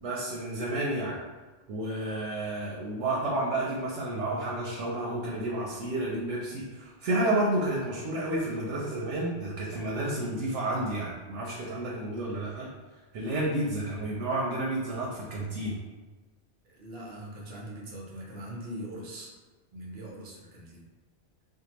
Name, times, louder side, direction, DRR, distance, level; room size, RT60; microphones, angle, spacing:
voice 1, 0.0-1.2 1.7-12.7 13.1-15.7, right 1 dB, 90° right, -3 dB, 0.9 m, -31 dB
voice 2, 16.6-19.3 19.7-20.8, right 1 dB, 60° right, -3 dB, 0.9 m, -41 dB
2.7 x 2.2 x 2.9 m, 1.3 s
omnidirectional pair, 1.2 m